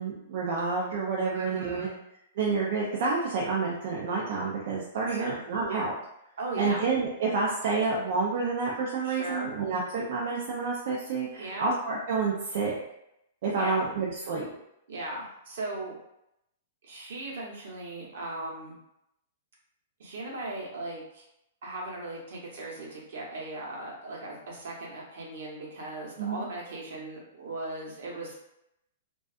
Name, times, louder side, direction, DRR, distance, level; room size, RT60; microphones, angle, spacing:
voice 1, 0.0-1.9 2.4-5.9 6.6-12.8 13.4-14.5 26.2-26.4, right 4 dB, 50° right, -4 dB, 0.4 m, -29 dB
voice 2, 1.3-1.9 5.0-5.4 6.4-6.8 9.0-9.5 11.4-11.7 13.6-13.9 14.9-15.9 16.8-18.8 20.0-21.2 21.6-28.4, right 2 dB, 65° right, -3 dB, 0.9 m, -38 dB
2.5 x 2.3 x 2.3 m, 0.81 s
hypercardioid pair, 170°, 0 cm